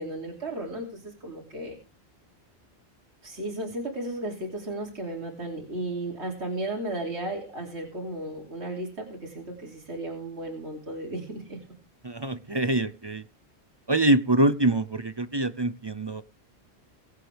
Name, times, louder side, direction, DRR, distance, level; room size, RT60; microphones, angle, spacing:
voice 1, 0.0-1.8 3.2-11.6, right 1 dB, 75° right, -1 dB, 3.3 m, -34 dB
voice 2, 12.0-13.2 13.9-16.2, right 2 dB, 30° right, 14 dB, 0.5 m, -24 dB
23.0 x 8.2 x 3.4 m, 0.33 s
omnidirectional pair, 1.1 m